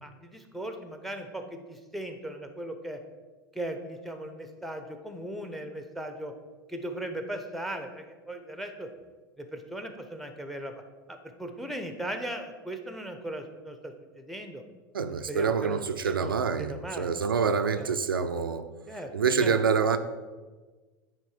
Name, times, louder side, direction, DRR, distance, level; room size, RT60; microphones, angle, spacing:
voice 1, 0.0-3.0 3.5-6.3 6.7-8.9 9.4-10.7 11.1-14.6 15.3-16.3 16.6-17.1 17.8-18.0 18.9-19.1 19.4-19.6, right 1 dB, ahead, 0.8 m, -38 dB
voice 2, 14.9-18.7 19.1-20.0, right 5 dB, 90° right, 0.4 m, -26 dB
9.2 x 3.1 x 4.9 m
hypercardioid pair, 85°, 11 cm